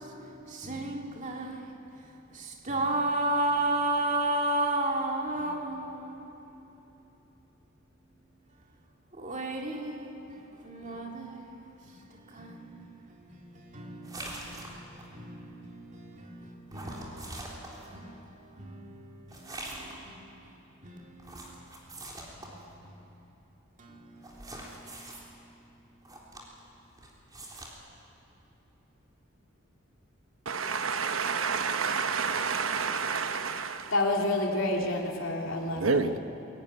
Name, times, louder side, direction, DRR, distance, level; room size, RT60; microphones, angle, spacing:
voice 1, 0.0-1.9 2.3-6.3 9.2-12.0 12.3-13.0 13.3-18.3 18.6-20.2 20.8-21.8 22.4-22.6 22.9-23.0 23.8-24.5 35.8-35.9, right 2 dB, 35° right, 2.2 m, -34 dB
sound 1, 14.0-15.1 16.7-17.9 19.3-20.0 21.2-22.6 24.2-25.2 26.0-26.7 27.0-27.7, right 1 dB, 20° right, 3.6 m, -43 dB
voice 2, 30.5-33.9 35.8-36.2, right 5 dB, 75° right, 1.1 m, -29 dB
voice 3, 33.9-36.1, left 2 dB, 70° left, 3.1 m, -28 dB
22.5 x 17.5 x 9.7 m
head